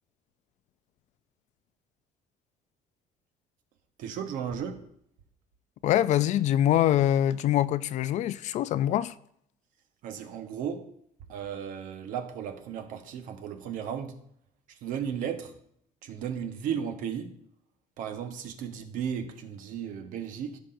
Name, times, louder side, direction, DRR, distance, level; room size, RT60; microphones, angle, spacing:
voice 1, 4.0-4.9 10.0-10.9 11.3-14.2 14.7-15.6 16.0-17.4 18.0-20.6, right 8 dB, 70° right, 1.2 m, -35 dB
voice 2, 5.8-9.1, left 12 dB, 55° left, 0.4 m, -24 dB
15.0 x 5.9 x 2.6 m
cardioid pair, 140°, 14 cm